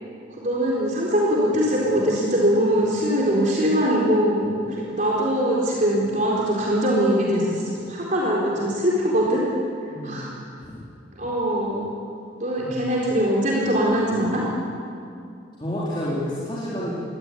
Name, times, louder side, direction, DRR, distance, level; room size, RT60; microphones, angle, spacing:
voice 1, 0.4-9.4 10.0-10.3 11.2-11.9 12.4-14.4, equal, 40° right, -4 dB, 4.1 m, -22 dB
voice 2, 9.9-10.3 10.6-10.7 12.6-12.8 15.6-16.9, equal, 25° left, -7 dB, 4.0 m, -29 dB
22.0 x 18.0 x 9.8 m, 2.4 s
head